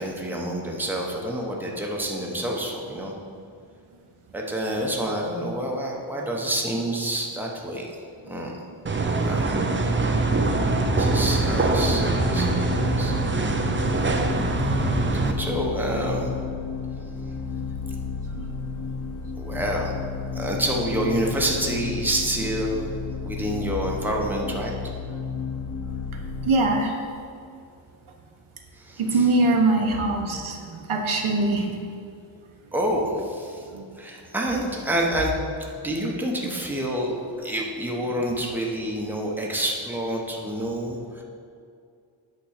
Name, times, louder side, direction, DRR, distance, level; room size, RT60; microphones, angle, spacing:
voice 1, 0.0-3.1 4.3-7.9 8.3-8.6 9.2-9.6 11.0-12.6 13.0-13.1 13.4-14.3 14.8-16.3 19.4-19.9 20.3-22.9 23.2-24.7 28.7-29.3 32.7-33.7 34.0-35.5 35.8-41.2, right 1 dB, 5° right, -2 dB, 0.9 m, -28 dB
sound 1, 8.9-15.3, right 3 dB, 25° right, 0.5 m, -23 dB
sound 2, 10.0-26.5, left 5 dB, 35° left, 0.7 m, -32 dB
voice 2, 13.3-13.6 18.3-18.5 26.4-26.9 29.0-31.6 33.7-33.8, right 2 dB, 80° right, 2 dB, 1.1 m, -23 dB
8.8 x 3.8 x 6.4 m, 2.4 s
wide cardioid pair, 145°, 48 cm